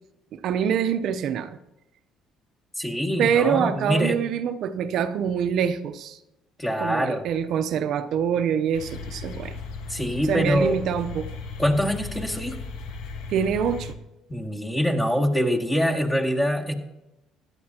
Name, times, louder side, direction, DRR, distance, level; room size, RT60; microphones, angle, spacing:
voice 1, 0.3-1.6 3.2-6.2 6.8-9.5 10.3-11.3 13.3-14.0, right 8 dB, 65° right, 9 dB, 0.7 m, -25 dB
voice 2, 2.8-4.2 6.6-7.3 9.9-10.8 11.6-12.6 14.3-16.7, equal, 15° left, 1 dB, 2.2 m, -24 dB
sound 1, 8.7-13.9, left 4 dB, 80° left, 1.3 m, -36 dB
16.0 x 11.5 x 2.9 m, 0.91 s
supercardioid pair, 85°, 0 cm